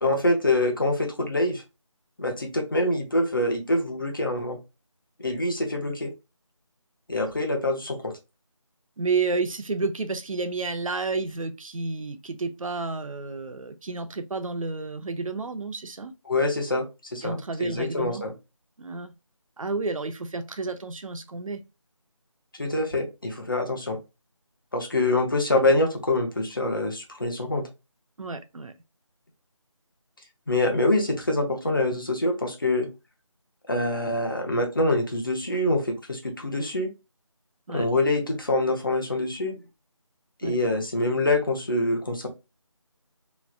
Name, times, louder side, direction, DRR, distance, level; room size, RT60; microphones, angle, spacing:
voice 1, 0.0-1.6 2.2-4.6 5.2-6.1 7.1-8.1 16.3-16.9 17.1-18.3 22.5-24.0 24.7-27.6 30.5-32.9 33.7-36.9 37.7-39.6 40.4-42.3, left 2 dB, 40° left, 0.8 m, -25 dB
voice 2, 9.0-16.1 17.2-18.2 18.8-19.1 19.6-21.6 28.2-28.7 37.7-37.8 40.4-40.5, right 3 dB, 80° right, 0.6 m, -31 dB
3.1 x 2.4 x 2.3 m
figure-of-eight pair, 180°, 17 cm